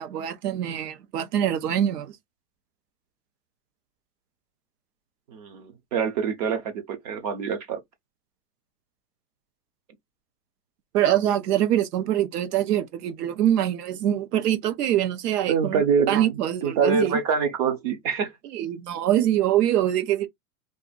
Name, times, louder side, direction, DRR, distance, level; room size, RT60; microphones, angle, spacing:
voice 1, 0.0-2.2 10.9-15.8 16.1-17.2 18.4-20.3, right 11 dB, 75° right, 0.9 m, -24 dB
voice 2, 5.3-7.8 15.5-16.2 16.6-18.3, right 6 dB, 30° right, 0.4 m, -25 dB
2.5 x 2.4 x 3.8 m
supercardioid pair, 145°, 47 cm